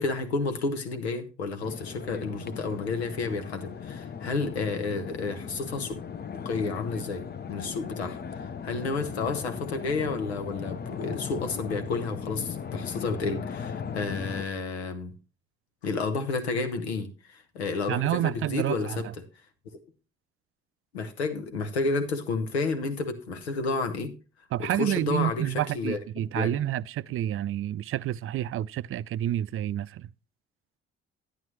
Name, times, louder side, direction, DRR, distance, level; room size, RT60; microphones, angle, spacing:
voice 1, 0.0-5.9 6.3-7.2 7.5-15.1 15.8-19.2 20.9-24.1 24.6-26.0 26.3-26.6, left 3 dB, 85° left, 1.1 m, -31 dB
sound 1, 1.6-14.5, left 7 dB, 30° left, 0.7 m, -37 dB
voice 2, 17.9-19.0 24.5-30.1, right 13 dB, 45° right, 0.5 m, -29 dB
10.5 x 9.7 x 3.1 m
figure-of-eight pair, 45°, 31 cm